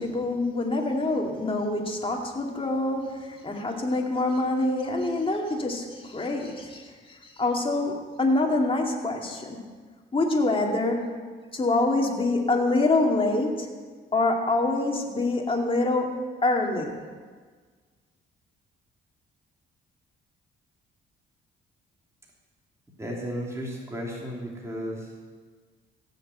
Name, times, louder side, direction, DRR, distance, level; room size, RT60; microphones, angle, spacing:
voice 1, 0.0-9.6 10.1-11.1 11.5-13.7 14.1-16.1 16.4-17.1, left 2 dB, 25° left, 1 dB, 2.4 m, -26 dB
voice 2, 23.0-25.1, equal, 15° right, -3 dB, 2.9 m, -34 dB
16.0 x 6.6 x 7.9 m, 1.5 s
cardioid pair, 90°, 20 cm